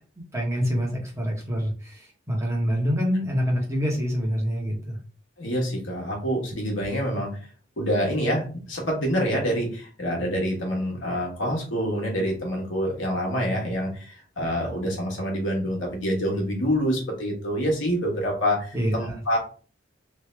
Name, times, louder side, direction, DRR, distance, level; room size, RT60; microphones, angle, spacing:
voice 1, 0.3-5.0 18.7-19.2, equal, 15° right, -2 dB, 1.2 m, -26 dB
voice 2, 5.4-7.3 7.8-19.4, equal, 70° left, -1 dB, 1.3 m, -26 dB
3.2 x 2.8 x 3.3 m, 0.39 s
head